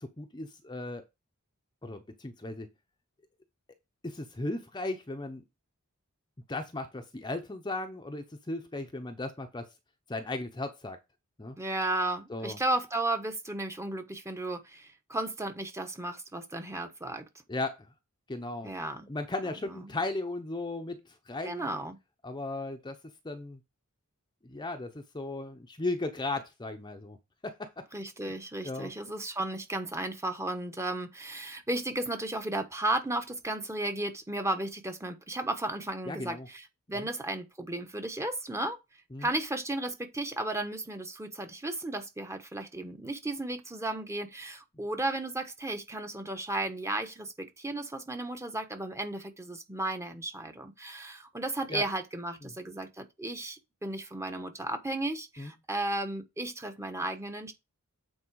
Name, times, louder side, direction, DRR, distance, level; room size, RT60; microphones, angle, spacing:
voice 1, 0.0-1.1 1.8-2.7 4.0-5.4 6.5-9.7 10.1-11.0 11.4-11.6 12.3-12.6 17.5-17.9 18.3-18.7 19.1-21.7 22.2-23.0 23.2-23.6 24.4-27.2 27.4-27.8 28.6-28.9 36.1-36.5 39.1-39.3 51.7-51.8 55.4-55.5, left 2 dB, 20° left, 0.8 m, -36 dB
voice 2, 11.6-17.2 18.6-19.1 19.7-20.0 21.4-22.0 27.9-38.8 39.2-57.5, right 2 dB, 15° right, 1.1 m, -34 dB
8.6 x 4.4 x 4.7 m
head